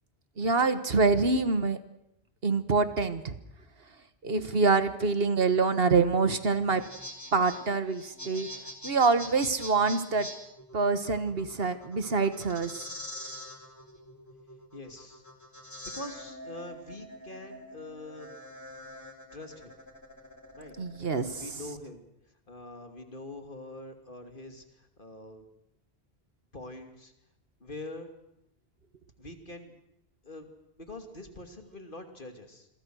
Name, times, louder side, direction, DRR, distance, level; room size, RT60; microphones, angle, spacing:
voice 1, 0.4-1.8 2.4-3.4 4.2-6.8 7.3-8.5 8.8-10.3 10.7-12.9 20.8-21.4, right 4 dB, 65° right, 11 dB, 1.7 m, -26 dB
sound 1, 6.6-21.3, equal, 15° left, 3.0 m, -45 dB
voice 2, 14.7-15.2 15.8-18.4 19.3-19.7 20.6-20.8 21.3-22.1 22.5-25.4 26.5-27.1 27.6-28.1 29.2-29.7 30.2-30.5 30.8-32.7, left 2 dB, 55° left, 5 dB, 3.0 m, -44 dB
27.5 x 23.0 x 6.4 m, 0.81 s
omnidirectional pair, 1.1 m